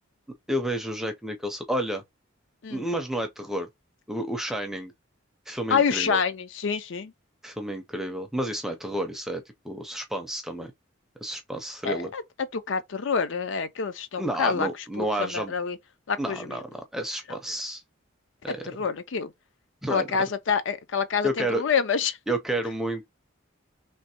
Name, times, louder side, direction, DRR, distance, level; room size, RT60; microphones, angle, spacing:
voice 1, 0.5-2.0 2.7-3.7 4.1-4.9 5.5-6.2 7.4-10.7 11.2-12.1 14.2-15.5 16.2-17.8 18.4-18.7 19.8-20.1 21.2-21.6 22.3-23.1, right 1 dB, ahead, 0.5 m, -30 dB
voice 2, 5.7-7.1 11.8-12.2 12.5-14.7 15.0-15.8 16.1-16.6 18.5-19.3 19.9-22.2, left 6 dB, 65° left, 0.5 m, -27 dB
3.2 x 2.9 x 2.8 m
head